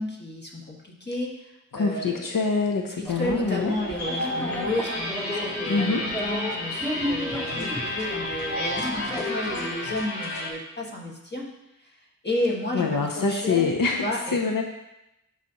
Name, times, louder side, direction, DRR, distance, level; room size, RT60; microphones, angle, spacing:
voice 1, 0.0-2.3 3.0-11.5 11.8-13.7 14.0-14.4, left 1 dB, 30° left, -2 dB, 1.6 m, -32 dB
voice 2, 1.7-3.7 5.6-6.1 12.7-14.0 14.3-14.6, left 4 dB, 85° left, 1 dB, 0.7 m, -25 dB
sound 1, 3.1-9.7, left 1 dB, 5° left, 0.8 m, -34 dB
sound 2, 3.7-10.5, left 1 dB, 60° left, 2.2 m, -31 dB
12.5 x 4.1 x 2.9 m, 0.88 s
wide cardioid pair, 55°, 33 cm